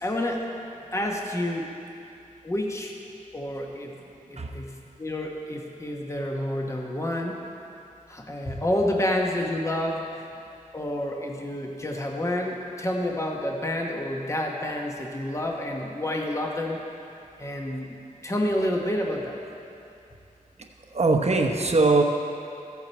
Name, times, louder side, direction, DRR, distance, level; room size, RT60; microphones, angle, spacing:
voice 1, 0.0-0.5 0.9-1.7 2.4-2.9 3.3-4.0 4.3-7.4 8.1-10.2 10.7-16.8 17.4-18.0 18.2-19.3, left 1 dB, 20° left, 0 dB, 1.0 m, -29 dB
voice 2, 20.9-22.0, right 3 dB, 50° right, 2 dB, 1.0 m, -20 dB
14.0 x 8.4 x 4.3 m, 2.7 s
wide cardioid pair, 90°, 14 cm